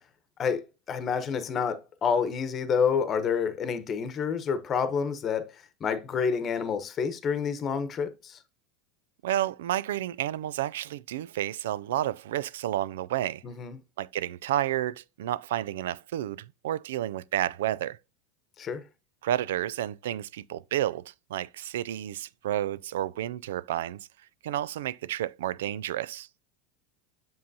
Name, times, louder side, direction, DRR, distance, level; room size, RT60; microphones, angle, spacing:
voice 1, 0.4-5.5 5.8-8.4 13.4-13.8 18.6-18.8, left 6 dB, 30° left, 1.0 m, -28 dB
voice 2, 9.2-13.4 14.0-18.0 19.2-24.0 24.4-26.3, right 12 dB, 90° right, 0.3 m, -31 dB
7.7 x 5.5 x 2.7 m
supercardioid pair, 125°, 0 cm